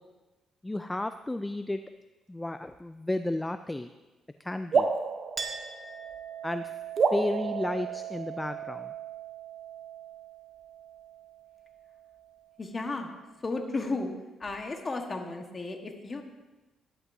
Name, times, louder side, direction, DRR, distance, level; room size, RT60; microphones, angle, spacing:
voice 1, 0.6-1.8 2.3-3.9 4.4-4.9 6.4-6.7 7.1-8.9, left 1 dB, 10° left, 10 dB, 0.3 m, -33 dB
sound 1, 4.7-6.4 7.0-8.7, right 5 dB, 50° right, 0.8 m, -30 dB
Chink clink, 5.4-12.4, right 8 dB, 25° right, 1.3 m, -40 dB
voice 2, 12.6-13.1 13.4-14.1 14.4-16.2, left 3 dB, 30° left, 4 dB, 1.4 m, -34 dB
14.0 x 11.0 x 2.7 m, 1.1 s
cardioid pair, 90°, 0 cm